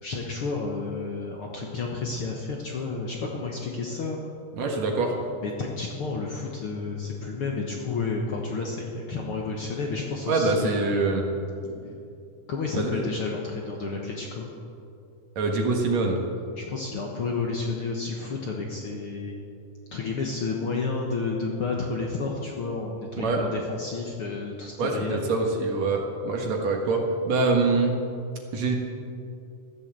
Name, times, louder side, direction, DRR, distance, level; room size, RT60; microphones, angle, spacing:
voice 1, 0.0-4.2 5.4-10.9 12.5-14.5 16.6-19.4 19.9-25.2, left 4 dB, 55° left, 0 dB, 1.7 m, -31 dB
voice 2, 4.6-5.2 10.3-11.2 11.9-12.0 12.8-13.0 15.4-16.2 23.2-23.4 24.8-27.9 28.5-28.7, right 3 dB, 60° right, 2 dB, 2.6 m, -24 dB
15.0 x 11.0 x 7.6 m, 2.6 s
omnidirectional pair, 3.8 m